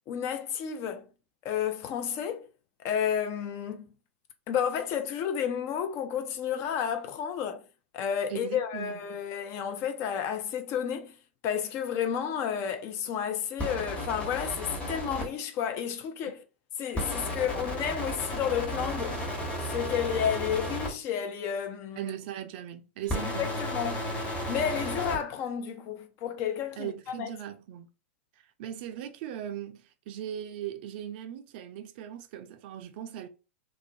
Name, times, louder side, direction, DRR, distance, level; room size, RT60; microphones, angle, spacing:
voice 1, 0.1-1.0 1.4-2.4 2.8-3.9 4.5-7.6 7.9-11.1 11.4-16.4 16.8-19.2 19.6-22.0 23.1-24.0 24.5-27.3, left 8 dB, 40° left, 0.4 m, -31 dB
voice 2, 8.3-9.0 22.0-23.5 26.8-27.9 28.6-33.3, right 10 dB, 50° right, 0.4 m, -39 dB
sound 1, 13.6-15.3 16.9-20.9 23.0-25.2, equal, 20° left, 1.1 m, -33 dB
2.4 x 2.0 x 2.5 m
figure-of-eight pair, 100°, 7 cm